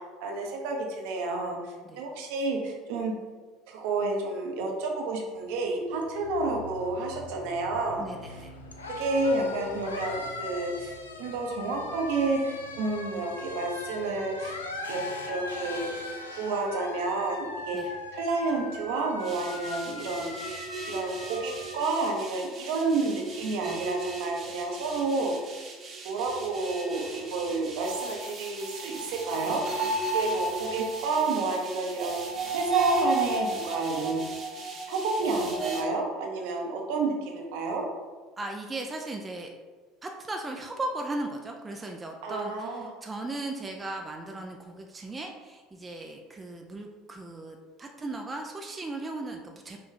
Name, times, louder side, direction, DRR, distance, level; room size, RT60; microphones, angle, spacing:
voice 1, 0.0-1.6 2.0-3.1 3.7-8.0 8.9-14.6 14.9-16.0 16.3-25.3 26.0-29.6 30.1-32.2 32.5-34.2 34.9-37.8 42.2-42.9, right 3 dB, 65° right, 1 dB, 0.9 m, -30 dB
sound 1, 5.5-21.9, left 3 dB, 85° left, 0.5 m, -40 dB
voice 2, 8.0-8.5 17.7-17.9 36.5-36.6 38.4-39.5 40.0-49.8, right 2 dB, 20° right, 2 dB, 0.5 m, -37 dB
sound 2, 19.2-35.8, right 3 dB, 40° right, 1.0 m, -34 dB
5.5 x 2.6 x 3.8 m, 1.4 s
figure-of-eight pair, 65°, 0 cm